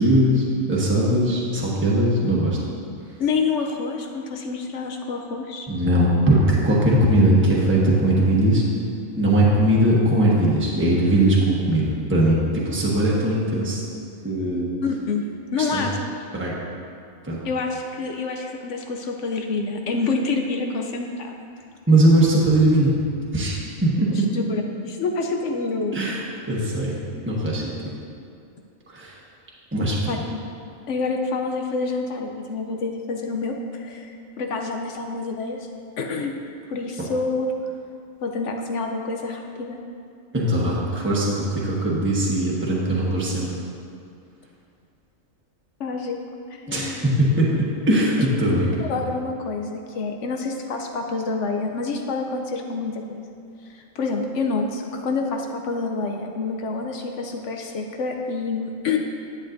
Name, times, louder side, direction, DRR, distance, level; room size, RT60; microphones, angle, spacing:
voice 1, 0.0-2.6 5.7-8.6 9.2-13.8 14.2-14.7 15.6-15.8 16.3-16.5 17.2-17.4 21.9-23.0 23.3-24.3 25.9-26.2 26.5-27.0 27.2-27.7 28.9-29.2 29.7-30.1 40.3-43.5 46.7-48.9, right 1 dB, 10° right, -5 dB, 1.1 m, -20 dB
voice 2, 3.2-5.7 14.8-16.0 17.4-21.5 24.3-26.0 30.1-30.4 30.9-35.7 36.0-36.3 36.7-37.5 38.2-39.8 45.8-46.2 46.5-47.0 48.7-53.3 53.7-59.0, left 4 dB, 65° left, 3 dB, 0.9 m, -27 dB
10.5 x 8.0 x 2.6 m, 2.4 s
omnidirectional pair, 1.4 m